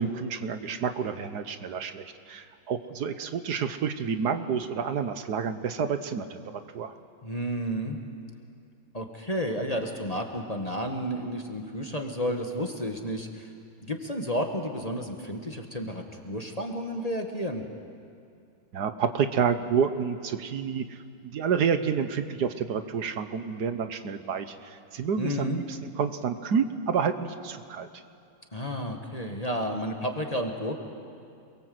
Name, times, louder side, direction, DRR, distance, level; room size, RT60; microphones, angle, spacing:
voice 1, 0.0-6.9 18.7-21.0 21.2-24.5 24.9-27.9, right 6 dB, 60° right, 9 dB, 1.5 m, -29 dB
voice 2, 7.2-8.0 8.9-13.5 13.9-17.6 25.2-25.6 28.5-30.8, equal, 20° left, 3 dB, 1.6 m, -31 dB
28.5 x 22.0 x 7.9 m, 2.4 s
omnidirectional pair, 2.1 m